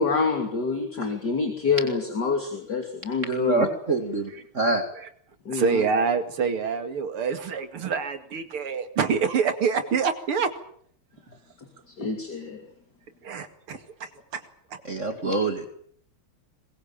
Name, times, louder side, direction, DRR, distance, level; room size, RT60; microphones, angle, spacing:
voice 1, 0.0-3.7 5.4-5.8 11.9-12.6, left 4 dB, 50° left, 4 dB, 3.3 m, -26 dB
voice 2, 3.2-4.3 4.5-4.8 14.9-15.6, right 3 dB, 35° right, 6 dB, 2.4 m, -25 dB
voice 3, 5.5-10.5 13.2-14.1, right 5 dB, 90° right, 8 dB, 3.1 m, -26 dB
22.5 x 21.5 x 8.9 m, 0.64 s
omnidirectional pair, 2.3 m